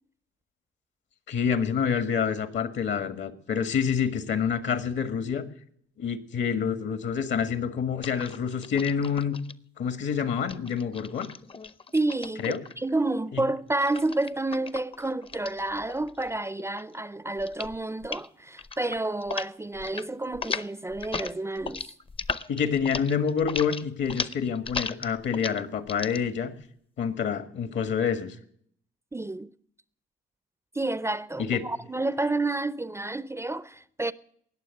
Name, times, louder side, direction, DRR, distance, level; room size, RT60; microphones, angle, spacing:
voice 1, 1.3-5.4 6.0-9.4 9.8-11.3 12.4-12.6 13.3-13.4 22.5-26.5 27.0-28.4 31.5-31.6, left 7 dB, 65° left, 1.7 m, -27 dB
sound 1, 8.0-9.5 10.4-12.9 13.8-16.3 16.6-17.0 17.4-17.8 18.0-18.3 18.6-19.5 19.7-20.1 20.3-26.2, left 4 dB, 25° left, 0.7 m, -36 dB
voice 2, 11.9-21.9 29.1-29.5 30.7-34.1, right 2 dB, 15° right, 0.5 m, -30 dB
19.0 x 7.0 x 9.4 m
cardioid pair, 90°, 20 cm